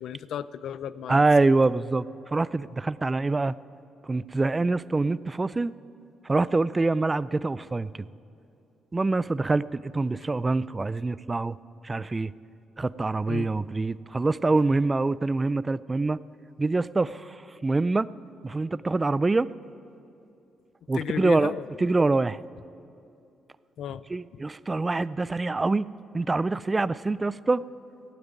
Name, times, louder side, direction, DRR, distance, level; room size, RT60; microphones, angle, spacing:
voice 1, 0.0-1.2 13.3-13.5 20.9-21.9 23.8-24.0, left 9 dB, 70° left, 16 dB, 0.5 m, -34 dB
voice 2, 1.1-3.6 4.0-5.7 6.2-7.9 8.9-11.6 11.8-12.3 12.8-16.2 16.6-18.1 18.4-19.5 20.9-21.5 21.8-22.4 24.1-27.6, right 3 dB, 20° right, 19 dB, 0.4 m, -25 dB
15.0 x 8.8 x 9.5 m, 2.7 s
cardioid pair, 90°, 0 cm